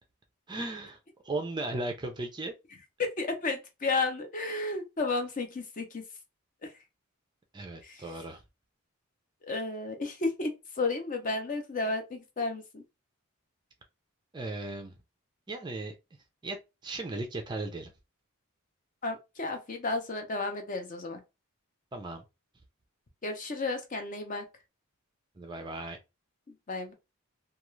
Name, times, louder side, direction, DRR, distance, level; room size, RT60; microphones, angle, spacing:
voice 1, 0.5-1.0 1.2-2.5 7.5-8.4 14.3-15.0 15.5-15.9 16.4-16.6 16.8-17.9 21.9-22.2 25.4-26.0, right 2 dB, 20° right, 0.4 m, -36 dB
voice 2, 3.0-6.0 7.8-8.0 9.5-12.8 19.0-21.2 23.2-24.4 26.7-26.9, left 3 dB, 35° left, 0.5 m, -32 dB
2.3 x 2.3 x 3.0 m
head